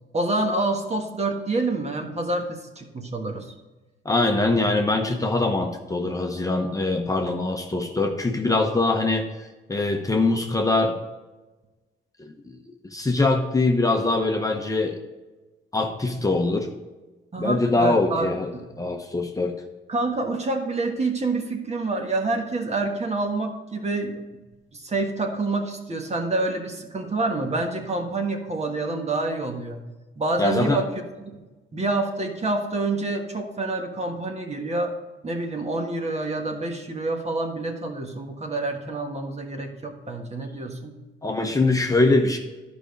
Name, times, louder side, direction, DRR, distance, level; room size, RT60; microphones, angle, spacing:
voice 1, 0.1-3.5 17.3-18.8 19.9-24.2 24.7-29.9 30.2-30.8 31.2-31.3 31.7-34.9 35.2-40.9, right 2 dB, 35° right, 3 dB, 1.5 m, -27 dB
voice 2, 4.0-11.0 12.2-12.6 12.9-15.0 15.7-16.7 17.4-18.5 18.8-19.5 30.4-30.8 41.2-42.4, left 2 dB, 15° left, 3 dB, 0.9 m, -23 dB
11.0 x 5.1 x 5.3 m, 1.2 s
cardioid pair, 90°, 20 cm